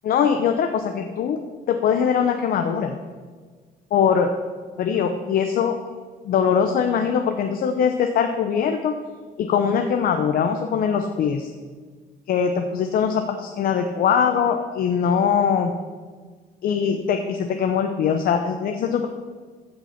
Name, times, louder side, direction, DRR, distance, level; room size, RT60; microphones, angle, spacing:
voice 1, 0.0-1.4 1.7-3.0 3.9-4.3 4.8-5.8 6.2-9.0 9.4-11.5 12.3-15.7 16.6-19.1, left 7 dB, 60° left, 5 dB, 0.8 m, -22 dB
15.0 x 5.6 x 5.8 m, 1.5 s
cardioid pair, 110°, 17 cm